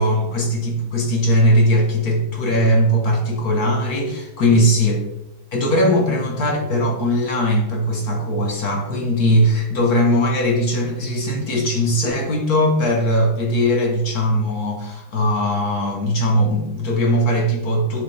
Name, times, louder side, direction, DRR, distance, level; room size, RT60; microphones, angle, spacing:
voice 1, 0.0-5.0 5.5-18.0, equal, 55° left, 1 dB, 1.6 m, -19 dB
10.0 x 5.4 x 3.3 m, 0.92 s
omnidirectional pair, 2.2 m